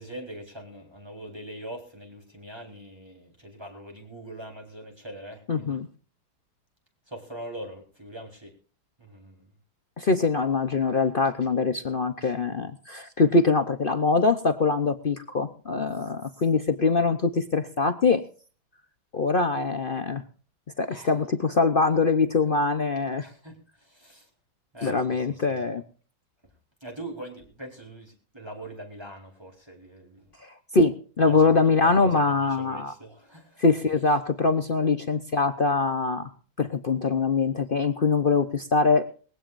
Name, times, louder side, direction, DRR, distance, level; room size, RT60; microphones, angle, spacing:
voice 1, 0.0-5.8 7.1-8.5 9.0-9.5 20.9-21.2 23.1-24.3 24.7-25.6 26.8-30.2 31.2-33.6, right 1 dB, 10° right, 1 dB, 4.2 m, -42 dB
voice 2, 5.5-5.9 10.0-18.2 19.1-20.2 20.8-23.2 24.8-25.8 30.4-32.9 33.6-36.3 36.6-39.1, left 4 dB, 55° left, 9 dB, 0.6 m, -23 dB
21.5 x 16.5 x 2.6 m, 0.39 s
omnidirectional pair, 2.2 m